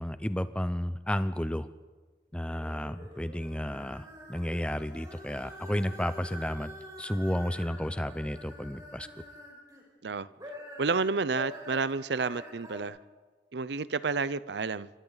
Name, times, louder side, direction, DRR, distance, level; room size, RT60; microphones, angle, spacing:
voice 1, 0.0-1.7 2.3-6.7 7.0-9.1, equal, 5° left, 0.6 m, -32 dB
sound 1, 2.4-9.8 10.3-12.8, equal, 20° right, 4.8 m, -46 dB
voice 2, 10.8-13.0 13.5-14.9, right 4 dB, 75° right, 0.6 m, -30 dB
28.0 x 24.5 x 4.0 m
head